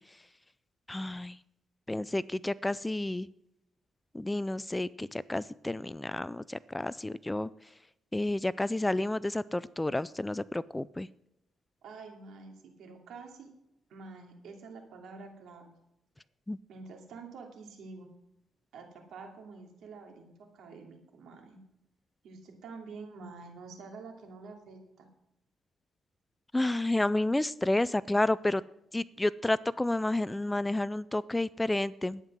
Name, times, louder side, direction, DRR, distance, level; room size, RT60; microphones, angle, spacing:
voice 1, 0.9-1.4 1.9-3.3 4.1-7.5 8.1-11.1 16.5-16.6 26.5-28.6 28.9-32.2, left 1 dB, 10° left, 18 dB, 0.3 m, -30 dB
voice 2, 11.8-13.5 13.9-15.8 16.7-18.1 18.7-21.6 22.2-25.1, right 4 dB, 80° right, 2 dB, 2.7 m, -47 dB
11.0 x 9.1 x 6.2 m, 0.84 s
cardioid pair, 110°, 0 cm